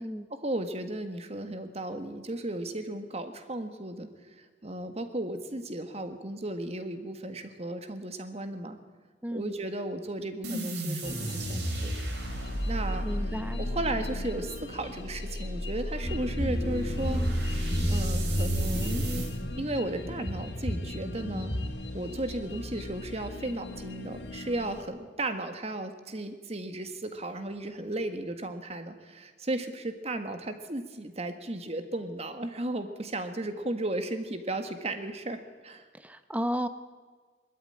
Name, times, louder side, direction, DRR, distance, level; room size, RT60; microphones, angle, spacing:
voice 1, 0.3-4.1 4.4-8.8 9.3-11.9 12.7-13.1 13.6-19.1 19.6-21.5 21.9-35.8, right 1 dB, 35° right, 8 dB, 1.6 m, -35 dB
sound 1, 10.4-19.3, equal, 65° right, 4.4 m, -33 dB
sound 2, 11.0-24.8, left 2 dB, 65° left, 1.4 m, -42 dB
voice 2, 13.0-13.6 35.9-36.7, equal, 10° right, 11 dB, 0.9 m, -33 dB
sound 3, 16.0-21.6, equal, 30° left, 1.8 m, -31 dB
21.5 x 13.0 x 9.8 m, 1.5 s
head